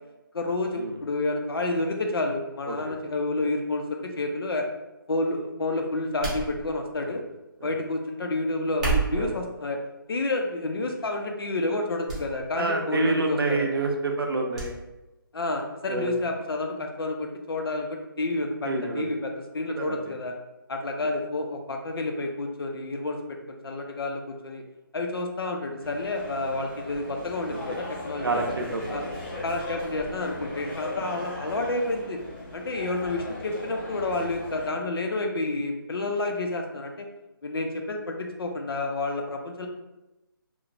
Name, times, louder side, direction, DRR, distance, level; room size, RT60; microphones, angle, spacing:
voice 1, 0.3-4.7 5.1-7.2 7.6-9.8 10.1-13.7 15.3-20.3 20.7-24.6 24.9-28.5 28.9-29.0 29.4-32.2 32.5-37.1 37.4-39.7, left 2 dB, 85° left, 3 dB, 0.5 m, -29 dB
sound 1, 6.2-7.0 8.6-9.4 10.1-10.5 11.0-11.1 12.1-12.3 12.5-12.6 14.5-14.7 15.1-15.2, right 4 dB, 20° right, 0.5 m, -29 dB
voice 2, 12.5-14.7 15.9-16.1 18.6-19.0 19.8-20.1 27.5-27.8 28.2-29.1, right 3 dB, 85° right, 2 dB, 0.6 m, -28 dB
sound 2, 25.8-34.7, left 2 dB, 35° left, 0.9 m, -38 dB
3.0 x 2.0 x 2.4 m, 1.0 s
hypercardioid pair, 170°, 12 cm